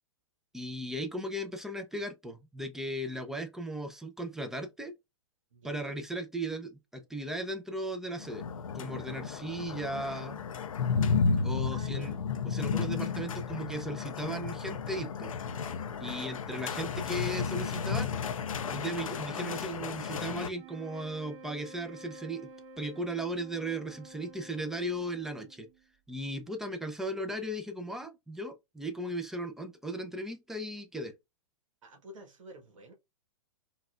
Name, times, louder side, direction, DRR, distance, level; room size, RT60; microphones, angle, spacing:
voice 1, 0.5-4.9 5.6-8.5 8.7-10.4 11.4-12.1 12.4-15.3 16.0-18.2 18.7-22.5 22.8-25.7 26.1-31.1, right 1 dB, ahead, 0.6 m, -37 dB
voice 2, 5.5-6.0 11.7-12.2 31.8-32.9, right 1 dB, 75° right, 1.1 m, -50 dB
sound 1, 8.2-20.5, left 5 dB, 85° left, 0.5 m, -33 dB
sound 2, 20.4-25.9, right 2 dB, 50° right, 2.0 m, -51 dB
4.0 x 2.4 x 2.5 m
hypercardioid pair, 120°, 17 cm